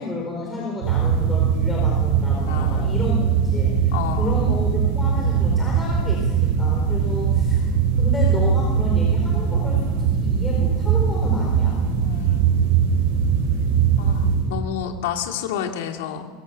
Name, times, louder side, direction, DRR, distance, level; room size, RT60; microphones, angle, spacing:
voice 1, 0.0-7.7 7.9-11.8, left 2 dB, 10° left, -3 dB, 4.1 m, -31 dB
sound 1, 0.8-14.5, right 7 dB, 75° right, 6.5 m, -20 dB
voice 2, 2.4-3.0 3.9-4.4 12.0-12.9 14.0-16.3, left 8 dB, 85° left, 3 dB, 2.9 m, -31 dB
24.5 x 22.5 x 6.8 m, 1.5 s
supercardioid pair, 170°, 0 cm